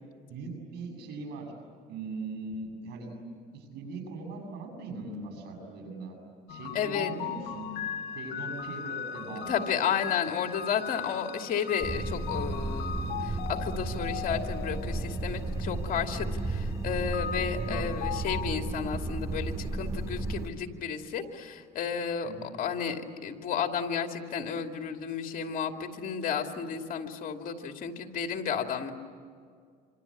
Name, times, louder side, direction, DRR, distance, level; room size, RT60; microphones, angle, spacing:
voice 1, 0.3-1.5 1.9-3.1 3.5-6.2 6.5-7.7 8.0-9.6 17.6-17.8 22.2-22.5, right 3 dB, 75° right, 2 dB, 7.1 m, -40 dB
sound 1, 6.5-18.5, left 8 dB, 85° left, 1.2 m, -39 dB
voice 2, 6.7-7.1 9.5-28.9, left 7 dB, 55° left, 4 dB, 2.7 m, -32 dB
sound 2, 11.8-20.5, right 2 dB, 15° right, 1.8 m, -33 dB
26.5 x 26.5 x 8.6 m, 2.1 s
cardioid pair, 110°, 17 cm